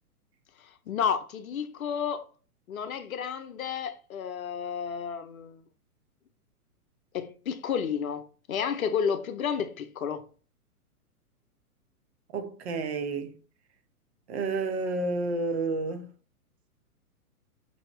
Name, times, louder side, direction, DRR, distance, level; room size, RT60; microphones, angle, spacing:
voice 1, 0.9-2.3 2.7-5.6 7.1-10.2, left 7 dB, 65° left, 0.7 m, -31 dB
voice 2, 12.3-13.3 14.3-16.1, right 3 dB, 45° right, 0.8 m, -30 dB
5.5 x 2.9 x 3.0 m
figure-of-eight pair, 115°, 45 cm